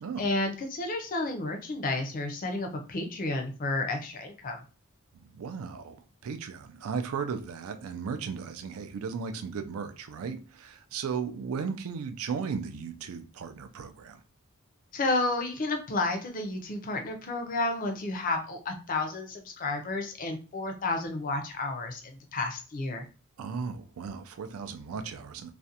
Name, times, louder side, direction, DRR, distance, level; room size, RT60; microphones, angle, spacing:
voice 1, 0.2-4.6 14.9-23.1, left 2 dB, 40° left, 0.4 m, -31 dB
voice 2, 5.1-14.2 23.4-25.5, right 6 dB, 75° right, 0.4 m, -36 dB
2.4 x 2.1 x 2.7 m
head